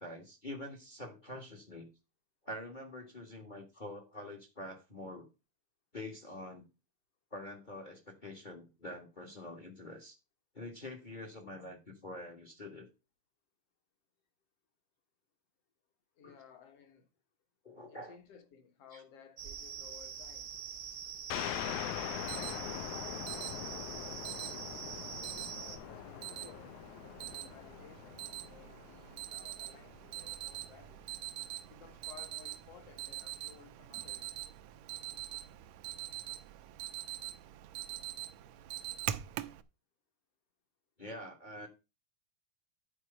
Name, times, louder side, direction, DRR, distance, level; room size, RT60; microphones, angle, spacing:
voice 1, 0.0-1.9 2.4-5.3 5.9-6.6 7.3-10.2 10.5-12.9 16.2-16.3 17.6-18.2 18.9-19.0 41.0-41.7, left 1 dB, 25° left, 1.0 m, -46 dB
voice 2, 16.2-17.1 17.9-20.5 21.6-24.9 25.5-26.8 27.0-31.1 31.7-34.3, left 7 dB, 60° left, 2.4 m, -57 dB
sound 1, 19.4-25.8, right 7 dB, 60° right, 1.1 m, -44 dB
sound 2, 21.3-30.5, left 13 dB, 80° left, 2.0 m, -43 dB
Alarm, 22.0-39.6, right 13 dB, 75° right, 1.8 m, -44 dB
11.0 x 4.8 x 5.4 m
omnidirectional pair, 3.4 m